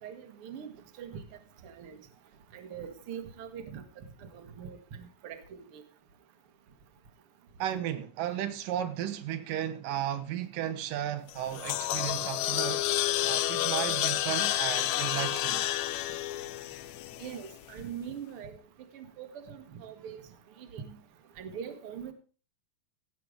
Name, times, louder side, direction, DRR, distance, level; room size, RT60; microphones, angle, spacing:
voice 1, 0.0-0.7 1.0-1.2 1.6-2.0 2.5-3.8 4.3-5.8 17.2-18.6 18.9-20.2 20.6-21.0 21.4-22.1, right 8 dB, 50° right, 2.1 m, -42 dB
voice 2, 7.6-12.9 13.2-15.7, right 11 dB, 90° right, 2.7 m, -34 dB
sound 1, 11.3-17.6, left 14 dB, 75° left, 1.8 m, -30 dB
16.0 x 7.8 x 5.0 m
omnidirectional pair, 3.7 m